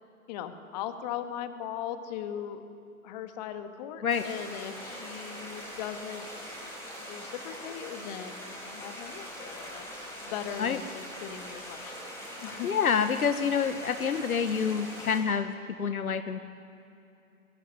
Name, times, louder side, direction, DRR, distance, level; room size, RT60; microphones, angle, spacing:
voice 1, 0.3-2.6 3.0-6.6 7.0-12.1 12.4-12.7, left 9 dB, 30° left, 8 dB, 1.5 m, -39 dB
sound 1, 4.1-15.2, equal, 5° left, 4.7 m, -42 dB
voice 2, 12.6-15.5 15.8-16.5, left 6 dB, 70° left, 10 dB, 1.1 m, -27 dB
22.5 x 15.5 x 9.6 m, 2.7 s
figure-of-eight pair, 135°, 44 cm